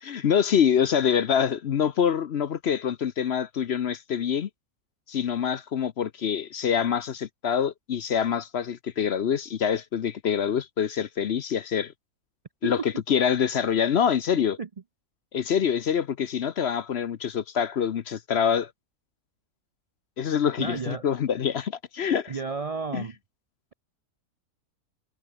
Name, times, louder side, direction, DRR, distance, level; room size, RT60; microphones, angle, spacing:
voice 1, 0.0-4.5 5.1-11.9 12.6-14.6 15.3-18.7 20.2-22.4 22.9-23.1, left 8 dB, 55° left, 0.8 m, -25 dB
voice 2, 20.6-21.0 22.3-23.1, right 4 dB, 60° right, 0.3 m, -32 dB
omnidirectional pair, 1.6 m